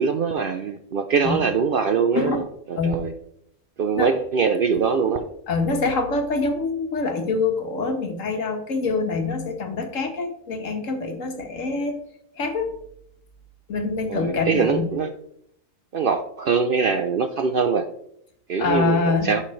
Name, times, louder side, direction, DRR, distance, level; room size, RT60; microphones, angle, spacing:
voice 1, 0.0-2.4 2.8-3.1 3.8-5.3 14.1-15.1 15.9-17.8 18.5-19.4, right 5 dB, 60° right, 8 dB, 0.6 m, -22 dB
voice 2, 5.5-12.0 12.4-12.7 13.7-14.9 18.6-19.4, left 3 dB, 70° left, 5 dB, 1.6 m, -25 dB
11.5 x 5.8 x 3.2 m, 0.74 s
omnidirectional pair, 1.4 m